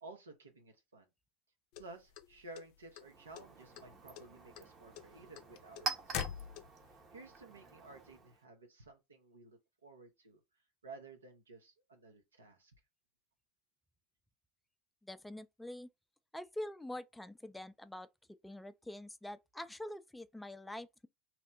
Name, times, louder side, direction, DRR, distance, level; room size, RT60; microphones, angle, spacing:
voice 1, 0.0-1.1 1.8-6.5 7.1-10.4 10.8-12.7, right 3 dB, 90° right, 0.8 m, -54 dB
sound 1, 1.7-3.0 3.3-3.9 4.2-7.0, left 10 dB, 60° left, 0.5 m, -43 dB
Chink clink, 2.9-8.4, right 4 dB, 40° right, 0.8 m, -46 dB
voice 2, 15.0-15.9 16.3-18.1 18.4-21.1, left 1 dB, 5° left, 0.4 m, -45 dB
2.9 x 2.1 x 3.9 m
hypercardioid pair, 80°, 0 cm